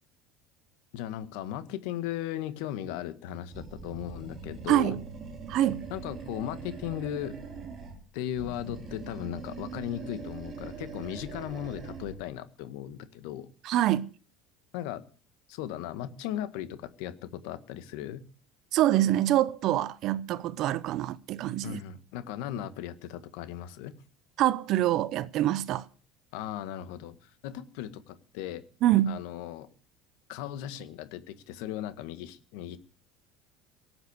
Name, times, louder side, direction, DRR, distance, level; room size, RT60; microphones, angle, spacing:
voice 1, 0.9-5.0 5.9-7.4 8.1-13.5 14.7-15.0 15.5-18.2 21.6-23.9 26.3-28.6 29.1-29.7 30.3-32.8, left 11 dB, 75° left, 1.7 m, -37 dB
Animal, 3.5-8.0 8.3-12.2, right 5 dB, 30° right, 3.7 m, -42 dB
voice 2, 4.7-5.0 5.5-5.8 13.6-14.1 18.7-21.8 24.4-25.8 28.8-29.2, right 13 dB, 50° right, 0.8 m, -25 dB
18.0 x 8.0 x 8.2 m
cardioid pair, 135°, 0 cm